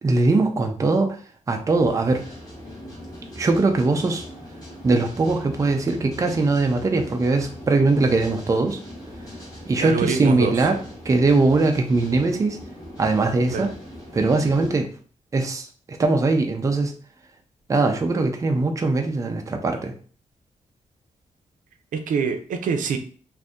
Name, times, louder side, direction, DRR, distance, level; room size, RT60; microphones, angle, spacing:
voice 1, 0.0-1.2 1.5-2.2 3.4-4.2 4.8-8.8 9.6-10.8 11.0-12.6 13.0-13.7 14.1-14.9 15.3-16.9 17.7-19.9, right 3 dB, 25° right, 4 dB, 0.4 m, -21 dB
sound 1, 1.7-14.7, equal, 25° left, 1.3 m, -40 dB
voice 2, 9.8-10.5 13.5-13.7 21.9-23.0, right 5 dB, 85° right, 6 dB, 0.5 m, -25 dB
2.6 x 2.5 x 3.5 m, 0.43 s
wide cardioid pair, 150°, 13 cm